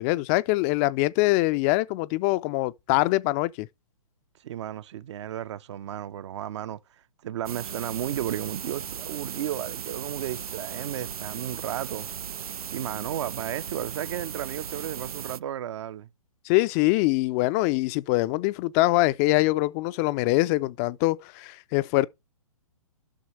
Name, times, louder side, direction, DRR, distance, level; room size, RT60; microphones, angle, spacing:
voice 1, 0.0-3.7 16.5-22.1, left 19 dB, 25° left, 0.4 m, -23 dB
voice 2, 4.4-6.8 7.2-12.1 12.7-16.1, right 11 dB, 50° right, 0.7 m, -33 dB
sound 1, 7.5-15.4, right 8 dB, 80° right, 0.4 m, -37 dB
11.5 x 6.2 x 3.1 m
hypercardioid pair, 125°, 19 cm